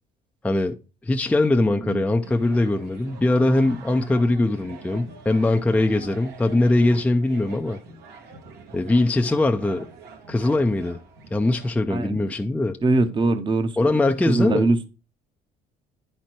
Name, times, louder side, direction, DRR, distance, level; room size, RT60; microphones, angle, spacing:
voice 1, 0.4-0.8 1.0-7.8 8.7-9.9 10.3-11.0 11.3-12.8 13.8-14.6, left 2 dB, 10° left, 0.5 m, -21 dB
sound 1, 2.2-11.7, right 4 dB, 80° right, 1.7 m, -44 dB
voice 2, 11.9-12.2 12.8-14.9, right 2 dB, 30° right, 0.8 m, -23 dB
10.0 x 4.4 x 4.5 m
cardioid pair, 110°, 17 cm